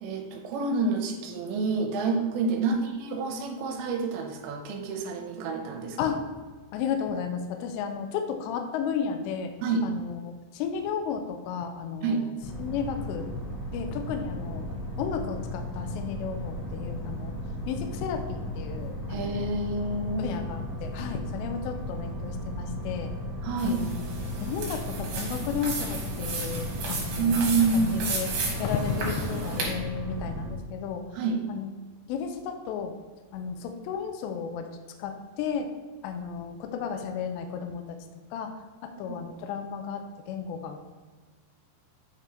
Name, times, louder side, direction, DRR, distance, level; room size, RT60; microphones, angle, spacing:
voice 1, 0.0-6.2 9.6-9.9 12.0-12.2 19.1-20.3 23.4-23.8 27.2-27.9 31.1-31.4, right 3 dB, 80° right, 3 dB, 3.1 m, -28 dB
voice 2, 6.7-9.5 9.8-10.2 10.5-12.3 12.6-13.3 13.7-14.7 15.0-17.3 17.7-19.4 20.2-23.1 23.6-24.1 24.4-27.4 27.7-28.3 28.6-31.0 31.5-31.7 32.0-32.9 33.3-34.7 35.0-35.7 36.0-38.0 38.3-38.5 38.8-40.8, left 6 dB, 80° left, 5 dB, 2.7 m, -33 dB
sound 1, 12.4-30.5, left 1 dB, 65° left, 3.6 m, -35 dB
sound 2, 23.6-29.7, right 3 dB, 65° right, 3.2 m, -34 dB
9.0 x 3.8 x 4.3 m, 1.4 s
omnidirectional pair, 5.2 m